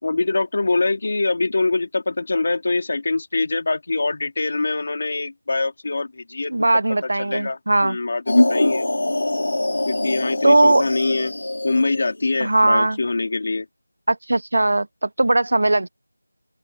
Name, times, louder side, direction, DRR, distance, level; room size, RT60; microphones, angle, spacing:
voice 1, 0.0-6.5 7.2-8.8 9.9-11.3 11.6-13.7, left 3 dB, 35° left, 3.9 m, -24 dB
voice 2, 6.5-8.0 10.4-10.8 12.4-13.0 14.1-15.9, right 2 dB, 50° right, 0.6 m, -18 dB
sound 1, 8.3-12.2, left 1 dB, 65° left, 4.5 m, -22 dB
open air
figure-of-eight pair, 180°, 0 cm